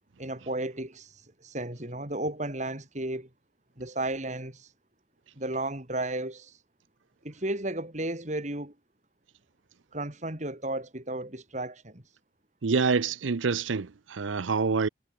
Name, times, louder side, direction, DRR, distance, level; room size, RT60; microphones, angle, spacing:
voice 1, 0.2-3.3 3.8-4.7 5.4-6.6 7.2-8.7 9.9-12.0, right 1 dB, 40° right, 3.7 m, -34 dB
voice 2, 12.6-14.9, right 4 dB, 90° right, 0.7 m, -26 dB
head